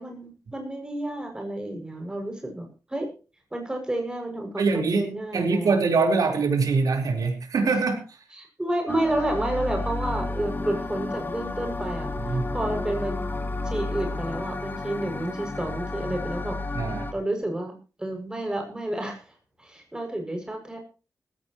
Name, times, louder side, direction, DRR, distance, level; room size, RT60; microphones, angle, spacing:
voice 1, 0.0-3.1 3.5-5.7 8.3-12.1 12.5-13.2 13.6-16.6 17.1-17.7 18.0-19.3 19.6-20.8, right 1 dB, 15° right, 4 dB, 6.7 m, -30 dB
voice 2, 4.6-8.2 12.3-12.5 16.7-17.1, right 4 dB, 75° right, 4 dB, 4.2 m, -24 dB
sound 1, 8.9-17.1, left 2 dB, 35° left, 1.9 m, -31 dB
19.0 x 16.5 x 3.1 m, 0.34 s
wide cardioid pair, 120°, 6 cm